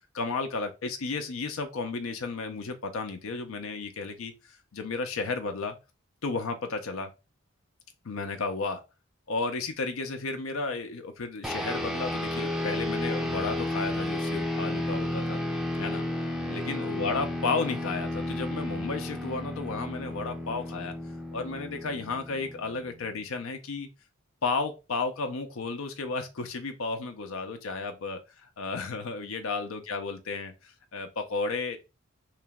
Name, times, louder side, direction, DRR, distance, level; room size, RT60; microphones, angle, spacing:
voice 1, 0.1-5.8 6.2-7.1 8.0-8.8 9.3-15.4 15.8-16.0 16.5-20.9 21.3-23.9 24.4-31.8, left 4 dB, 85° left, 0.6 m, -33 dB
sound 1, 11.4-23.1, left 1 dB, ahead, 0.4 m, -32 dB
3.3 x 2.9 x 3.5 m
head